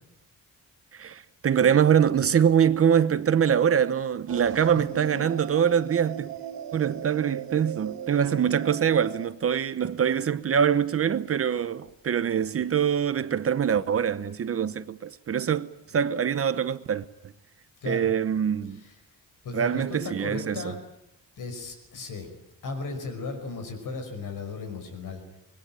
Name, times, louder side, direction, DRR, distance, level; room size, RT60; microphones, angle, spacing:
voice 1, 0.9-6.3 6.7-17.0 17.9-18.8 19.5-20.6, right 8 dB, 40° right, 0.9 m, -24 dB
sound 1, 4.3-9.3, right 8 dB, 70° right, 2.8 m, -38 dB
voice 2, 4.7-5.3 17.8-18.2 18.7-19.0 19.4-20.8 21.4-22.3 22.6-25.2, left 3 dB, 60° left, 5.7 m, -36 dB
25.0 x 21.5 x 9.0 m
wide cardioid pair, 175°, 36 cm